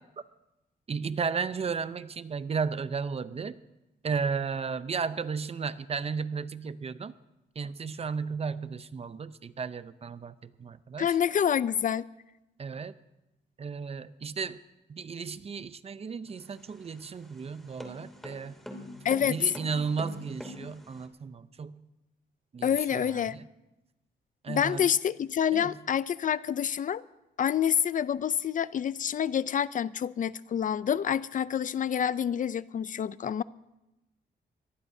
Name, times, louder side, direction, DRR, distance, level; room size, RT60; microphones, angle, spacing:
voice 1, 0.9-3.6 4.0-7.1 7.6-11.1 12.6-12.9 13.6-14.6 14.9-18.6 19.3-21.9 22.5-23.5 24.4-24.9 25.5-25.7, right 5 dB, 35° right, 14 dB, 0.6 m, -34 dB
voice 2, 11.0-12.0 19.0-19.5 22.6-23.4 24.5-27.0 27.4-33.4, left 8 dB, 50° left, 17 dB, 0.4 m, -27 dB
sound 1, 16.3-21.1, left 1 dB, ahead, 2.6 m, -44 dB
23.5 x 18.5 x 2.7 m, 0.95 s
cardioid pair, 110°, 18 cm